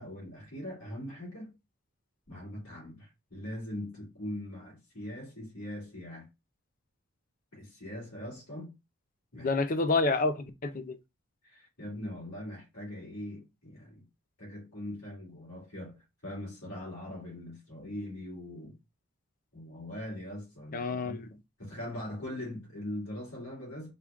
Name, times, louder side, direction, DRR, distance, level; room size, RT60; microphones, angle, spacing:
voice 1, 0.0-1.5 2.3-6.3 7.5-8.7 9.3-9.5 11.4-14.0 14.4-18.8 19.5-21.3 21.6-23.9, left 1 dB, 80° left, 2.7 m, -41 dB
voice 2, 9.3-11.0 20.7-21.3, left 3 dB, 40° left, 0.5 m, -29 dB
4.4 x 2.3 x 3.5 m
head